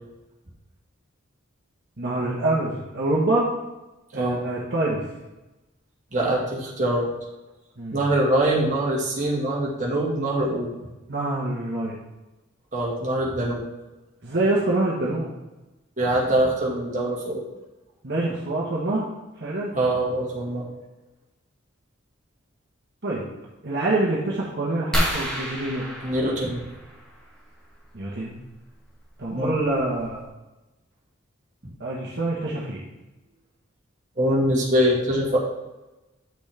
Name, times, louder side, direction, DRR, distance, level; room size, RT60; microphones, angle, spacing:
voice 1, 2.0-3.5 4.1-5.0 7.8-8.1 11.1-12.0 14.2-15.3 18.0-19.0 19.4-19.7 23.0-23.2 23.6-25.8 27.9-28.4 29.2-30.2 31.8-32.8, right 2 dB, 55° right, -5 dB, 1.3 m, -25 dB
voice 2, 6.1-7.1 7.9-10.7 12.7-13.6 16.0-17.4 19.7-20.7 26.0-26.6 29.3-29.5 34.2-35.4, right 1 dB, 40° right, -3 dB, 1.8 m, -23 dB
sound 1, 24.9-27.3 28.9-29.1 29.7-29.8 30.0-30.3, equal, 5° left, 1.7 m, -29 dB
9.0 x 6.2 x 3.5 m, 1.0 s
head